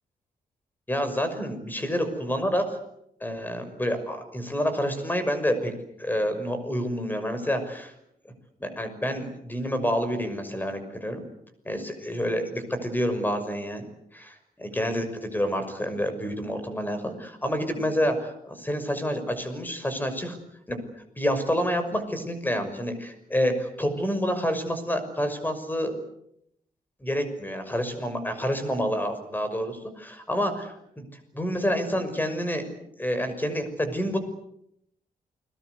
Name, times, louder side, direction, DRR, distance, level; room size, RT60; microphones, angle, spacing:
voice 1, 0.9-2.8 3.2-5.7 6.0-7.9 8.6-11.2 11.6-13.9 14.1-20.4 20.7-20.8 21.2-26.0 27.0-31.0 31.3-32.7 33.0-34.2, equal, 10° left, 9 dB, 6.1 m, -28 dB
30.0 x 22.0 x 8.1 m, 0.76 s
wide cardioid pair, 130°, 15 cm